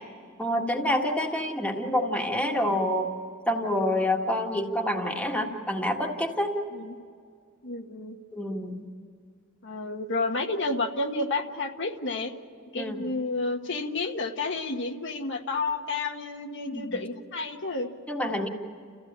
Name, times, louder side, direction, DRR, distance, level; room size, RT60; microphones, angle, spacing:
voice 1, 0.4-3.1 3.5-6.5 8.3-8.8 12.8-13.0 16.7-17.0 18.1-18.5, left 1 dB, 5° left, 1 dB, 1.8 m, -27 dB
voice 2, 7.6-8.2 9.6-12.3 12.7-17.9, left 3 dB, 60° left, 3 dB, 1.4 m, -30 dB
29.0 x 15.5 x 8.7 m, 2.2 s
head